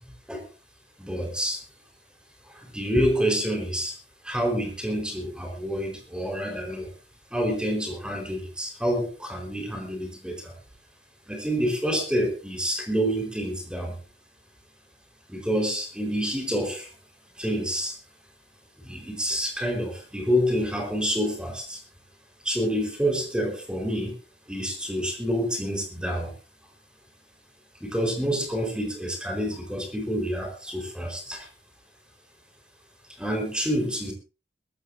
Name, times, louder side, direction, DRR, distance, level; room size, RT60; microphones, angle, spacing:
voice 1, 1.0-1.6 2.5-3.9 4.2-6.9 7.3-10.5 11.3-14.0 15.3-16.9 17.4-18.0 18.8-21.8 22.4-24.1 24.5-26.3 27.8-31.5 33.2-34.1, equal, 5° right, 3 dB, 4.3 m, -28 dB
21.5 x 14.5 x 2.6 m, 0.31 s
head